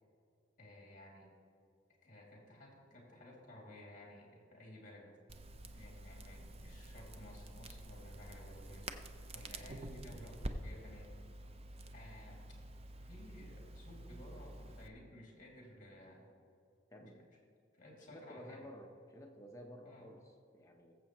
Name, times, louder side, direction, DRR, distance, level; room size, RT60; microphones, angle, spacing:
voice 1, 0.6-1.3 2.0-5.1 5.7-8.9 9.3-11.1 11.9-12.4 13.1-16.3 17.0-17.1 17.7-18.7 19.8-20.1, left 1 dB, 45° left, -2 dB, 2.6 m, -55 dB
Crackle, 5.3-14.9, right 1 dB, 35° right, 0.6 m, -48 dB
voice 2, 16.9-17.3 18.0-21.0, equal, 15° left, 1 dB, 1.0 m, -53 dB
20.0 x 7.7 x 3.1 m, 2.4 s
head